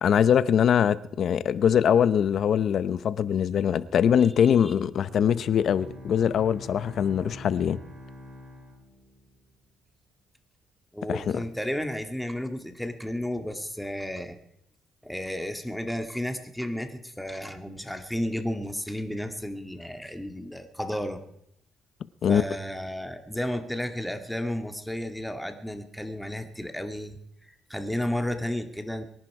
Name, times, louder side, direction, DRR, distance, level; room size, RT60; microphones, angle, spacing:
voice 1, 0.0-7.8 11.1-11.4 22.2-22.4, left 8 dB, 65° left, 0.8 m, -22 dB
Bowed string instrument, 5.1-9.5, left 1 dB, 55° right, 7.7 m, -45 dB
voice 2, 10.9-14.4 15.0-21.2 22.3-29.0, left 1 dB, 5° left, 2.0 m, -33 dB
23.5 x 10.5 x 4.8 m
cardioid pair, 90°, 0 cm